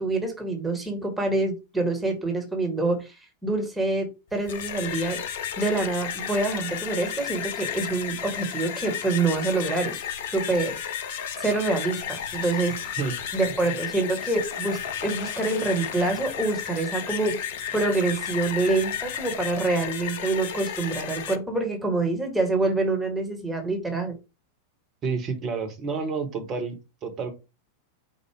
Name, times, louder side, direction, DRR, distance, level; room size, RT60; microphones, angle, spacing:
voice 1, 0.0-3.1 3.4-5.2 5.6-10.0 10.3-10.8 11.4-13.0 13.3-17.4 17.7-24.2, right 3 dB, 5° right, 1.3 m, -26 dB
sound 1, 4.3-21.4, left 8 dB, 55° left, 0.5 m, -33 dB
voice 2, 25.0-26.7 27.0-27.3, right 5 dB, 30° right, 1.3 m, -29 dB
4.6 x 2.4 x 4.7 m
figure-of-eight pair, 90°, 0 cm